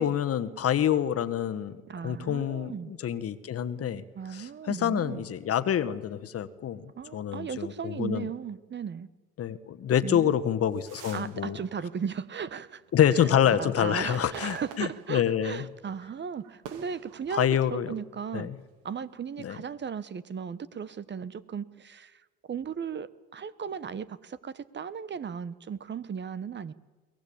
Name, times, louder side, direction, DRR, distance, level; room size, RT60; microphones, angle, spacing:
voice 1, 0.0-4.0 4.3-8.3 9.4-11.6 12.9-15.7 17.3-17.9 18.3-18.6 19.4-19.6, left 9 dB, 50° left, 13 dB, 1.4 m, -27 dB
voice 2, 1.9-2.9 4.1-5.2 7.0-9.1 10.0-10.4 11.1-12.8 13.1-18.5 18.8-26.7, right 7 dB, 35° right, 17 dB, 1.1 m, -36 dB
sound 1, 10.5-12.9 13.4-15.7 16.0-17.9 18.5-19.5, right 8 dB, 80° right, 2.6 m, -48 dB
22.5 x 18.5 x 8.7 m, 1.3 s
supercardioid pair, 80°, 31 cm